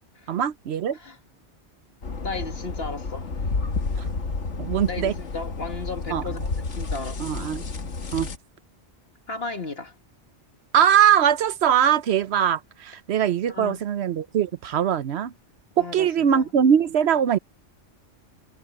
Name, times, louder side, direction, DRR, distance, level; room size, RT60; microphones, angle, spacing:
voice 1, 0.3-1.0 4.0-4.1 4.6-5.1 6.1-6.2 7.2-7.6 8.1-8.3 10.7-15.3 15.8-17.4, right 9 dB, 65° right, 0.9 m, -21 dB
sound 1, 2.0-8.4, left 3 dB, 80° left, 1.9 m, -30 dB
voice 2, 2.2-3.3 4.9-6.4 6.7-7.4 9.3-9.9 13.5-13.8 15.8-16.5, left 3 dB, 55° left, 1.9 m, -35 dB
omnidirectional pair, 1.2 m